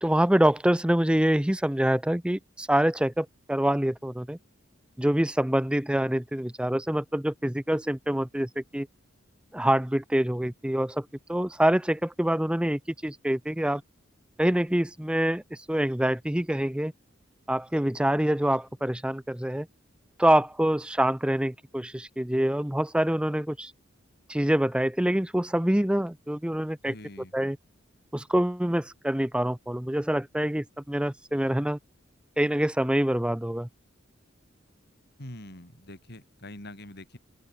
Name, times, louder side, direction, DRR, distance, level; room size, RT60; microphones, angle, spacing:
voice 1, 0.0-4.4 5.0-8.9 9.5-13.8 14.4-16.9 17.5-19.7 20.2-23.7 24.3-26.9 27.3-27.6 28.1-31.8 32.4-33.7, right 1 dB, 5° right, 0.6 m, -25 dB
voice 2, 26.9-27.4 35.2-37.2, left 1 dB, 55° left, 6.4 m, -44 dB
open air
head